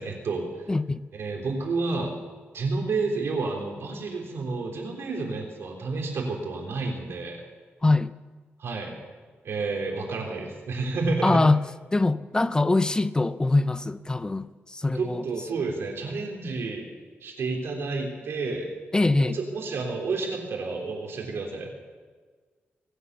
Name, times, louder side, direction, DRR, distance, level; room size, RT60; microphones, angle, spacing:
voice 1, 0.0-0.7 1.1-2.1 2.5-7.4 8.6-9.0 9.4-11.4 14.9-16.8 17.2-18.7 19.2-21.7, right 3 dB, 75° right, 3.6 m, -30 dB
voice 2, 0.7-1.0 7.8-8.1 11.2-11.6 11.9-15.2 18.9-19.4, left 2 dB, 20° left, 0.4 m, -23 dB
23.0 x 8.4 x 6.9 m
wide cardioid pair, 110°, 4 cm